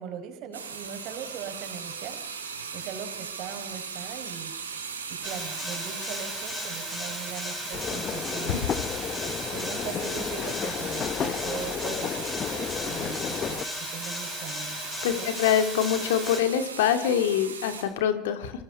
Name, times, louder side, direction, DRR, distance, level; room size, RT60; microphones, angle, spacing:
voice 1, 0.0-2.5 2.7-4.5 5.1-8.6 9.2-14.8 15.2-15.4, right 8 dB, 55° right, 7 dB, 5.1 m, -40 dB
sound 1, 0.5-17.8, right 6 dB, 90° right, 3.7 m, -38 dB
sound 2, 5.2-16.4, left 2 dB, 15° left, 6.6 m, -36 dB
sound 3, 7.7-13.6, left 8 dB, 40° left, 1.2 m, -32 dB
voice 2, 15.0-18.5, left 9 dB, 75° left, 8 dB, 2.3 m, -25 dB
26.5 x 23.0 x 5.5 m, 0.91 s
hypercardioid pair, 70°, 0 cm